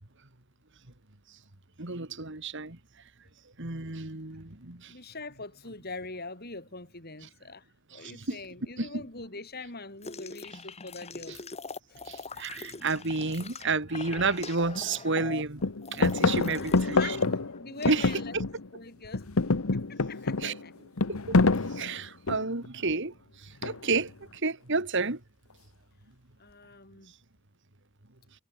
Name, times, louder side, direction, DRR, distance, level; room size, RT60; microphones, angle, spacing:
voice 1, 1.8-2.8 3.6-4.9 7.9-8.4 8.8-9.0 11.3-11.4 12.1-15.6 15.9-17.2 17.9-18.1 18.3-18.4 20.4-20.5 21.1-21.4 21.7-23.1 23.4-25.2, right 3 dB, 55° right, 2.4 m, -31 dB
voice 2, 4.9-11.4 11.9-12.1 16.2-18.4 18.7-19.3 19.7-20.7 26.4-27.1, left 3 dB, 45° left, 6.3 m, -43 dB
sound 1, 10.0-17.3 17.5-18.2, left 4 dB, 30° left, 2.0 m, -43 dB
sound 2, 14.2-14.3 14.7-15.3 15.6-18.8 19.0-22.7 23.6-24.1, left 3 dB, 75° left, 1.1 m, -27 dB
head